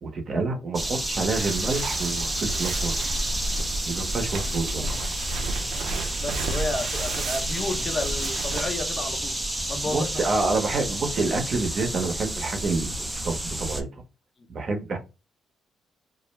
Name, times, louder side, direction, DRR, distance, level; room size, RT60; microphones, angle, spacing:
voice 1, 0.0-3.0 3.9-5.0 9.8-12.9 13.2-13.9 14.5-15.0, right 3 dB, 50° right, 0.7 m, -28 dB
sound 1, 0.7-13.8, right 1 dB, 10° right, 0.4 m, -30 dB
sound 2, 1.3-8.6, right 2 dB, 85° right, 0.4 m, -32 dB
voice 2, 6.2-9.3 9.7-10.3, left 2 dB, 40° left, 0.7 m, -31 dB
2.4 x 2.1 x 3.0 m
cardioid pair, 90°, 0 cm